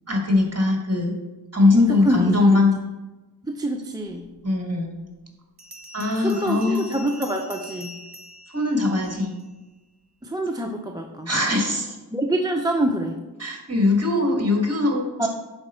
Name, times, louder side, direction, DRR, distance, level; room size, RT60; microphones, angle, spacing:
voice 1, 0.1-1.1 1.5-2.7 4.4-4.9 5.9-6.8 8.5-9.3 11.3-12.0 13.4-15.3, left 2 dB, 35° right, 1 dB, 1.8 m, -21 dB
voice 2, 1.8-2.6 3.4-4.3 6.2-8.0 10.2-11.3 12.1-13.2 15.2-15.3, right 1 dB, 10° right, 2 dB, 0.6 m, -25 dB
Bell, 4.4-4.5 5.6-9.5, equal, 60° right, 1.2 m, -43 dB
10.5 x 4.3 x 4.3 m, 1.1 s
wide cardioid pair, 60°, 42 cm